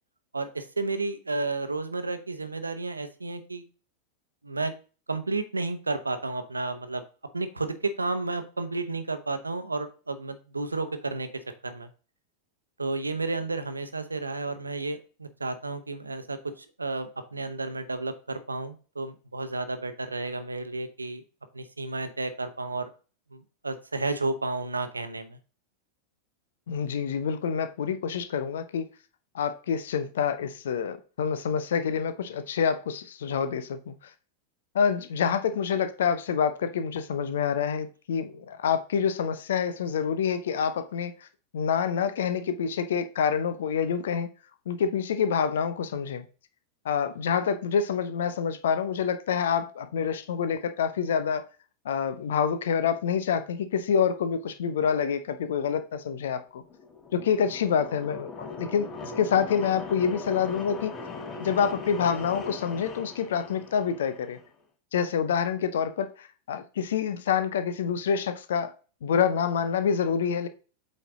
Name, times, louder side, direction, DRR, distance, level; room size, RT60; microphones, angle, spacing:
voice 1, 0.3-3.6 4.4-4.7 5.1-7.0 7.3-11.3 11.6-11.9 12.8-21.2 21.5-22.9 23.3-25.4, right 3 dB, 80° right, 0.9 m, -32 dB
voice 2, 26.7-28.9 29.3-33.9 34.7-41.1 41.5-44.3 44.7-46.2 46.8-51.4 51.8-56.6 57.1-58.9 59.2-60.9 61.4-64.4 64.9-68.7 69.0-70.5, left 7 dB, 60° left, 0.7 m, -27 dB
sound 1, 56.6-64.5, left 4 dB, 25° left, 1.3 m, -39 dB
7.9 x 4.4 x 3.8 m
figure-of-eight pair, 90°, 0 cm